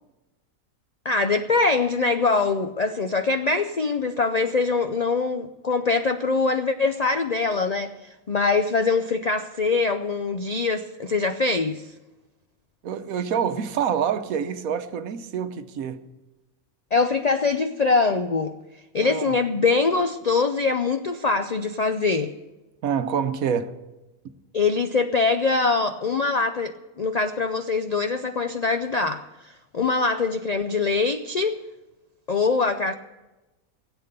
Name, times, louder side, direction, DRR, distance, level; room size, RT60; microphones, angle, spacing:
voice 1, 1.0-11.9 16.9-18.5 18.9-22.3 24.5-31.6 32.3-32.9, left 4 dB, 65° left, 8 dB, 0.4 m, -23 dB
voice 2, 12.8-16.1 19.0-19.3 22.8-23.7, right 7 dB, 75° right, 10 dB, 1.3 m, -26 dB
16.5 x 8.3 x 6.7 m, 1.1 s
omnidirectional pair, 1.5 m